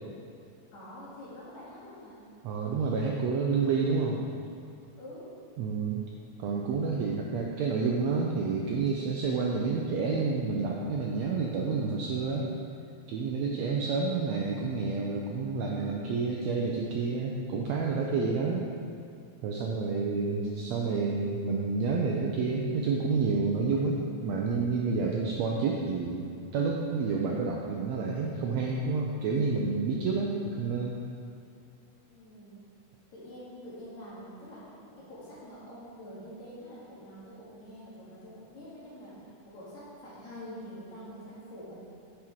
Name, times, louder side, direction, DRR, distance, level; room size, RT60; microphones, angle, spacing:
voice 1, 0.7-2.2 5.0-5.3 13.4-13.9 32.1-32.6 33.1-41.9, equal, 60° left, -7 dB, 3.0 m, -46 dB
voice 2, 2.4-4.2 5.6-6.0 6.4-12.5 13.1-18.6 19.4-31.0, right 4 dB, 85° right, -2 dB, 1.5 m, -29 dB
9.5 x 5.0 x 4.6 m, 2.4 s
omnidirectional pair, 3.7 m